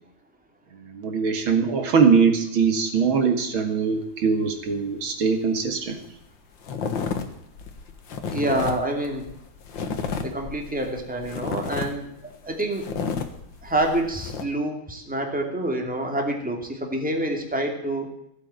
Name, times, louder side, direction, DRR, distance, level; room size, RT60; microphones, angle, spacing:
voice 1, 0.7-6.0, right 5 dB, 80° right, 6 dB, 2.9 m, -22 dB
sound 1, 5.7-5.8 6.0-6.3 6.6-14.4, left 5 dB, 70° left, 2.2 m, -32 dB
voice 2, 8.3-9.3 10.2-12.1 12.4-12.9 13.6-18.1, right 1 dB, 5° right, 1 dB, 2.5 m, -27 dB
16.5 x 8.5 x 9.0 m, 0.79 s
omnidirectional pair, 2.2 m